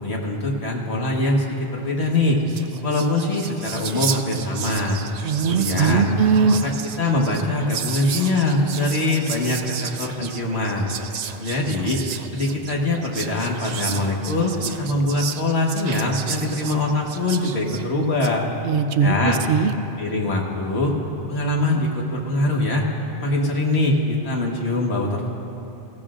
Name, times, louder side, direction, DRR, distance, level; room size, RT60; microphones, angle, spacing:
voice 1, 0.0-2.4 2.8-5.0 5.5-6.1 6.6-6.7 7.0-10.9 11.4-12.0 12.3-18.5 19.0-19.4 20.0-20.9 21.3-22.9 23.2-25.3, left 2 dB, 80° left, -1 dB, 1.7 m, -23 dB
Whispering, 2.1-2.2 2.4-18.4, right 7 dB, 55° right, 0.4 m, -33 dB
voice 2, 5.2-6.6 18.6-19.7, right 5 dB, 90° right, 10 dB, 0.9 m, -19 dB
21.0 x 15.0 x 2.5 m, 2.8 s
omnidirectional pair, 1.1 m